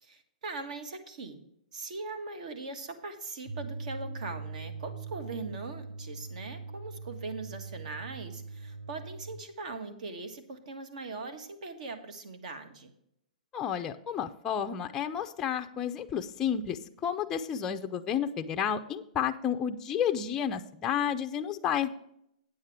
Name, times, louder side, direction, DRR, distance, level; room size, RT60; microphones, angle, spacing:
voice 1, 0.0-1.4 1.7-12.9, right 3 dB, 60° right, 9 dB, 1.6 m, -40 dB
sound 1, 3.4-9.4, right 4 dB, 80° right, 3.2 m, -41 dB
voice 2, 13.5-21.9, left 8 dB, 15° left, 5 dB, 0.4 m, -31 dB
9.2 x 7.2 x 4.9 m, 0.75 s
hypercardioid pair, 160°, 4 cm